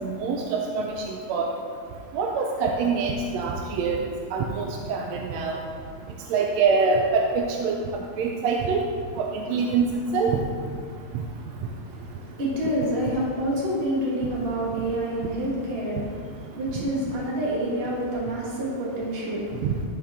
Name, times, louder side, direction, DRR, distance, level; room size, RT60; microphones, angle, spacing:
voice 1, 0.0-1.5 2.1-4.0 4.3-5.6 6.3-7.7 8.2-8.8 9.2-9.9 10.1-10.4 16.8-16.9 19.6-19.7, right 5 dB, 75° right, 1 dB, 1.7 m, -25 dB
voice 2, 11.8-19.7, right 1 dB, 25° right, -5 dB, 1.4 m, -28 dB
13.0 x 4.4 x 3.6 m, 2.1 s
omnidirectional pair, 3.4 m